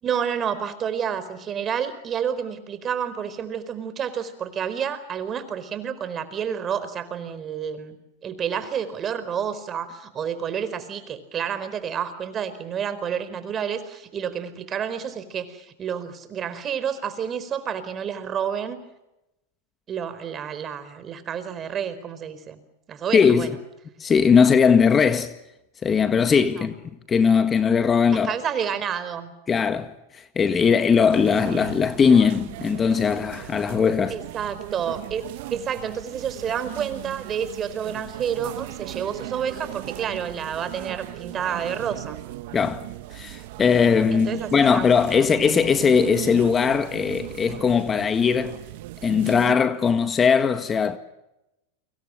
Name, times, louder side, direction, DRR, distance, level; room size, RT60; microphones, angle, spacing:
voice 1, 0.0-8.0 8.2-18.8 19.9-22.6 22.9-23.5 26.5-26.7 28.1-29.3 34.1-35.2 35.5-42.2 44.1-45.3, right 8 dB, 30° right, 4.5 m, -29 dB
voice 2, 23.1-23.5 24.0-25.3 25.8-26.8 27.1-28.3 29.5-34.2 42.5-42.8 43.1-48.6 49.0-51.0, left 6 dB, 25° left, 1.7 m, -19 dB
sound 1, 31.1-49.5, right 18 dB, 65° right, 1.3 m, -37 dB
30.0 x 25.0 x 6.5 m
hypercardioid pair, 115°, 0 cm